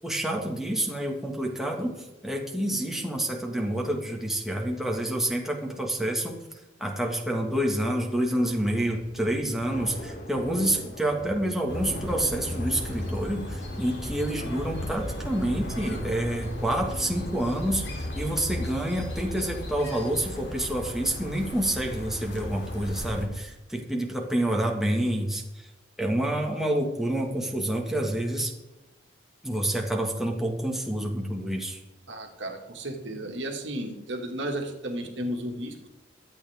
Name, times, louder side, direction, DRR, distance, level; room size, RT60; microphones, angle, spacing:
voice 1, 0.0-6.4 6.8-25.7 26.0-28.5 29.4-31.8, right 1 dB, ahead, 0 dB, 1.8 m, -28 dB
Thunder / Rain, 8.4-21.3, equal, 40° left, 2.8 m, -42 dB
sound 1, 11.7-23.3, left 1 dB, 60° left, 2.9 m, -36 dB
voice 2, 32.1-35.9, right 1 dB, 75° right, 2 dB, 2.1 m, -33 dB
23.5 x 8.6 x 3.6 m, 1.1 s
head